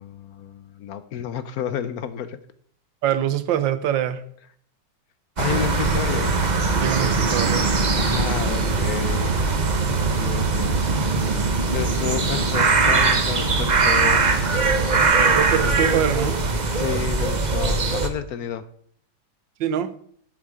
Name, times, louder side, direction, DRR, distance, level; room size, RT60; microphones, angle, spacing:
voice 1, 0.0-2.4 5.4-6.3 8.0-9.4 10.1-11.1 11.7-14.3 16.7-18.7, left 9 dB, 65° left, 13 dB, 1.0 m, -31 dB
voice 2, 3.0-4.2 6.8-7.7 10.1-10.2 15.3-16.4 19.6-19.9, right 10 dB, 80° right, 12 dB, 1.6 m, -24 dB
sound 1, 5.4-18.1, right 3 dB, 35° right, 0.8 m, -21 dB
11.0 x 7.2 x 5.0 m, 0.62 s
omnidirectional pair, 2.0 m